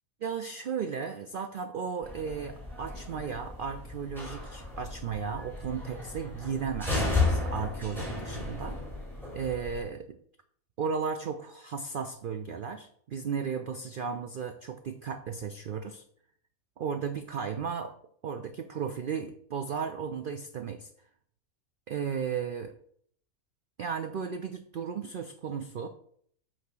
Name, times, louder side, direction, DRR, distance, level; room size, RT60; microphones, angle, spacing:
voice 1, 0.2-8.8 9.3-10.1 10.8-16.0 16.8-17.9 18.2-20.9 21.9-22.7 23.8-25.9, right 6 dB, 80° right, 8 dB, 0.4 m, -35 dB
sound 1, 2.0-9.8, left 3 dB, ahead, 3.2 m, -34 dB
8.4 x 3.1 x 6.0 m, 0.63 s
omnidirectional pair, 1.5 m